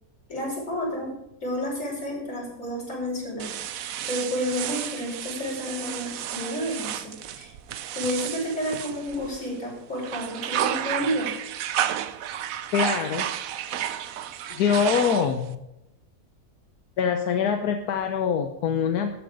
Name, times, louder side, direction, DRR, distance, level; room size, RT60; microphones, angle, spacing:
voice 1, 0.3-1.1 1.4-7.5 8.0-11.3, equal, 55° left, -4 dB, 5.9 m, -31 dB
sound 1, 3.4-9.6 10.0-15.5, right 10 dB, 70° right, 1.0 m, -32 dB
voice 2, 12.7-13.3 14.5-15.6 17.0-19.2, left 7 dB, 85° left, 6 dB, 1.4 m, -24 dB
12.5 x 9.3 x 5.2 m, 0.87 s
omnidirectional pair, 1.6 m